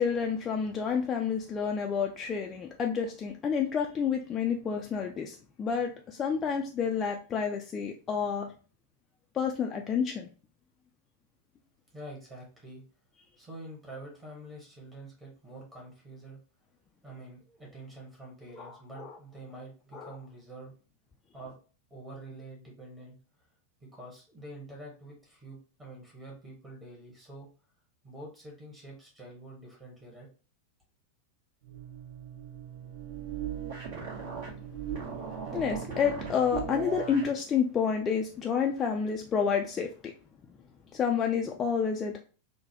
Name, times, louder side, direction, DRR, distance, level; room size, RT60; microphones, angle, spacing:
voice 1, 0.0-8.5 9.3-10.3 18.6-18.7 19.0-19.1 19.9-20.1 35.5-39.9 40.9-42.2, left 6 dB, 25° left, 2 dB, 0.3 m, -29 dB
voice 2, 11.9-12.8 13.4-16.4 17.0-20.8 21.3-21.6 21.9-23.2 23.8-27.5 28.0-30.3, right 1 dB, 15° right, -3 dB, 1.3 m, -46 dB
sound 1, 31.6-37.4, right 7 dB, 50° right, 1.1 m, -38 dB
3.7 x 2.2 x 2.7 m, 0.37 s
figure-of-eight pair, 90°, 0 cm